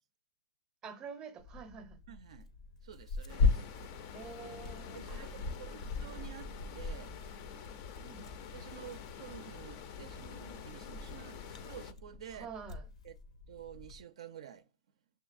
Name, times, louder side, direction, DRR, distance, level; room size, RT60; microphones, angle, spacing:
voice 1, 0.8-2.0 4.1-5.7 6.0-6.1 8.0-8.3 12.3-12.8, right 6 dB, 20° right, 0.5 m, -48 dB
Tearing, 1.4-14.0, left 4 dB, 80° left, 0.7 m, -39 dB
voice 2, 2.1-2.5 2.8-3.7 4.9-5.3 5.6-7.2 8.5-12.5 13.0-13.2 13.5-14.7, right 10 dB, 65° right, 0.4 m, -50 dB
sound 1, 3.3-11.9, left 7 dB, 40° left, 0.4 m, -47 dB
6.3 x 2.7 x 2.4 m
hypercardioid pair, 135°, 3 cm